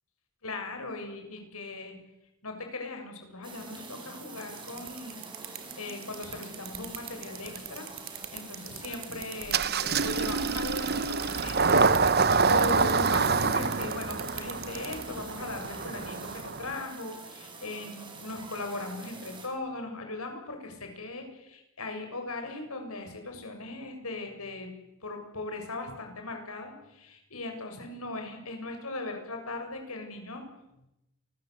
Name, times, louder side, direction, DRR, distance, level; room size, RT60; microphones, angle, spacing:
voice 1, 0.4-2.0 2.4-11.7 12.0-24.7 25.0-30.4, left 2 dB, 90° left, 4 dB, 7.4 m, -39 dB
sound 1, 3.4-19.5, right 3 dB, 20° right, 5.6 m, -45 dB
sound 2, 4.4-15.0, right 13 dB, 70° right, 3.4 m, -39 dB
Engine starting, 9.5-16.8, right 4 dB, 45° right, 1.1 m, -26 dB
28.0 x 22.5 x 8.2 m, 0.91 s
head